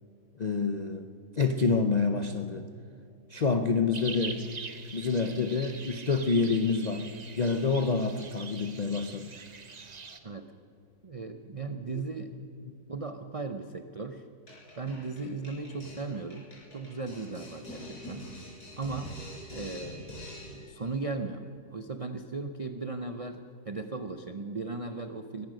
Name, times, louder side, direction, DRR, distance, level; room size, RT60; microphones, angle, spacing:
voice 1, 0.4-1.1 1.4-2.7 3.3-4.4 4.9-7.1 7.4-9.3, left 4 dB, 55° left, 7 dB, 0.4 m, -27 dB
sound 1, 3.9-10.2, right 4 dB, 35° right, 0.8 m, -43 dB
voice 2, 11.0-12.3 12.9-14.2 14.8-18.3 18.8-19.2 19.5-20.2 20.4-25.5, right 3 dB, 55° right, 7 dB, 0.3 m, -37 dB
sound 2, 14.5-20.8, left 1 dB, 75° left, 5.1 m, -45 dB
21.5 x 10.5 x 6.4 m, 2.7 s
omnidirectional pair, 1.7 m